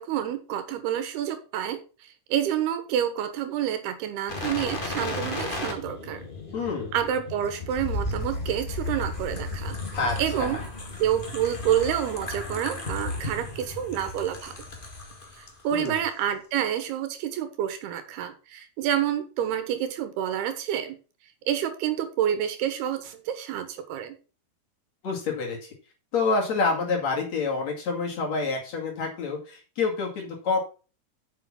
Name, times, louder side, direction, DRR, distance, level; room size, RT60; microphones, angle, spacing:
voice 1, 0.0-1.8 2.3-6.2 6.9-9.8 10.2-10.6 11.0-14.5 15.4-21.0 21.5-24.1, right 10 dB, 85° right, 9 dB, 3.3 m, -28 dB
sound 1, 4.3-15.5 15.8-16.0, left 2 dB, 85° left, 0.4 m, -34 dB
voice 2, 6.5-6.9 9.9-10.6 15.7-16.0 25.0-25.7 26.1-30.6, left 4 dB, 50° left, -1 dB, 3.2 m, -27 dB
7.7 x 6.9 x 5.9 m, 0.36 s
omnidirectional pair, 4.5 m